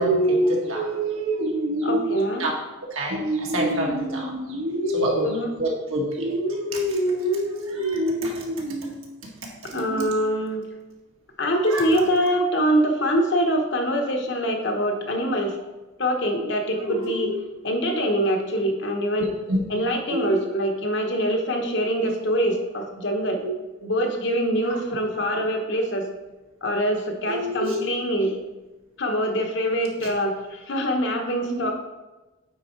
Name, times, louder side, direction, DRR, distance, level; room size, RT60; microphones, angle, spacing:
voice 1, 0.0-2.1 2.4-2.5 2.9-8.9 9.7-10.1 11.7-11.9 16.7-17.3 19.2-19.6 20.1-20.4 23.4-23.5 24.7-24.8 27.3-27.8 31.5-31.7, right 1 dB, 75° right, -2 dB, 1.8 m, -26 dB
voice 2, 1.8-2.5 5.2-5.5 9.7-10.6 11.4-15.6 16.0-19.3 19.7-23.4 23.8-26.1 26.6-28.4 29.0-31.7, equal, 55° left, 3 dB, 1.0 m, -24 dB
8.8 x 4.0 x 4.5 m, 1.1 s
head